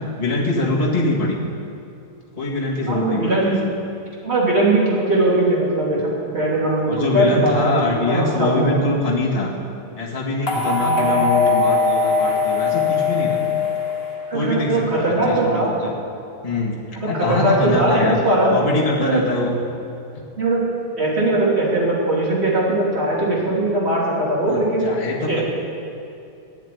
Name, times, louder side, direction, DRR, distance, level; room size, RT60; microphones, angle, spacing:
voice 1, 0.2-1.4 2.4-3.5 6.9-9.5 10.0-13.4 14.3-15.9 16.4-16.7 17.0-18.2 18.5-19.6 24.5-25.4, left 2 dB, 20° left, -4 dB, 1.8 m, -23 dB
voice 2, 2.9-3.5 4.2-8.8 10.8-11.0 14.3-15.7 17.0-18.6 19.0-19.2 20.4-20.6 21.0-24.8 25.3-25.4, right 2 dB, 40° right, -5 dB, 3.3 m, -20 dB
sound 1, 10.5-14.7, left 4 dB, 40° left, 1.4 m, -20 dB
12.5 x 7.4 x 9.4 m, 2.7 s
omnidirectional pair, 1.8 m